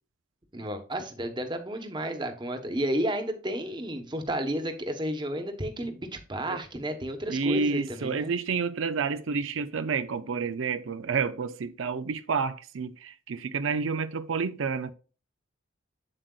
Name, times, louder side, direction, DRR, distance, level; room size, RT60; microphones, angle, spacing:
voice 1, 0.5-8.3, right 1 dB, 25° right, 1.0 m, -32 dB
voice 2, 7.3-14.9, right 5 dB, 85° right, 0.5 m, -29 dB
7.9 x 7.5 x 2.3 m
head